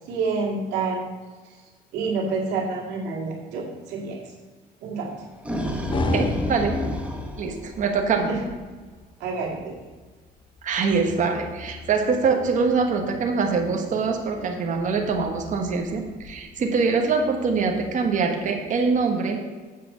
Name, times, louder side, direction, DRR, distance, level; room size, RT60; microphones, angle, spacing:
voice 1, 0.1-1.0 1.9-4.2 4.8-5.1 8.3-8.4 9.2-9.7, right 4 dB, 85° right, -1 dB, 2.2 m, -28 dB
sound 1, 5.1-8.4, left 1 dB, 5° right, 1.1 m, -29 dB
sound 2, 5.9-19.0, left 3 dB, 30° left, 0.6 m, -37 dB
voice 2, 6.1-6.7 7.4-8.3 10.6-19.4, right 4 dB, 50° right, 3 dB, 1.3 m, -24 dB
7.7 x 5.1 x 7.2 m, 1.4 s
cardioid pair, 110°, 17 cm